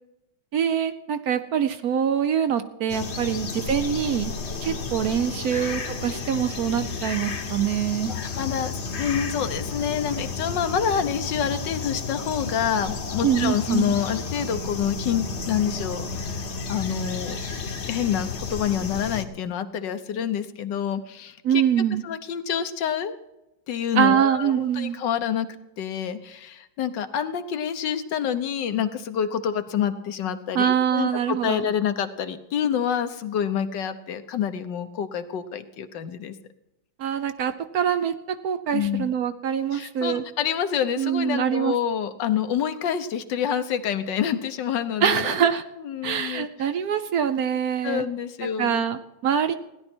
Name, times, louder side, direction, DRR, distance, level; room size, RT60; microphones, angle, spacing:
voice 1, 0.5-4.3 4.6-8.1 13.2-13.9 21.4-22.0 24.0-25.0 30.5-31.6 37.0-38.1 38.4-40.2 41.0-41.7 45.0-45.6 46.0-48.0 48.6-49.5, right 8 dB, 65° right, 10 dB, 1.0 m, -24 dB
sound 1, 2.9-19.2, left 4 dB, 45° left, 1.2 m, -32 dB
voice 2, 8.1-16.4 16.7-17.4 17.9-21.6 22.0-23.1 23.7-25.5 25.8-36.3 38.7-39.1 39.7-45.5 45.8-46.5 47.8-48.8, left 8 dB, 75° left, 10 dB, 1.6 m, -27 dB
16.5 x 11.0 x 4.4 m, 0.92 s
omnidirectional pair, 2.0 m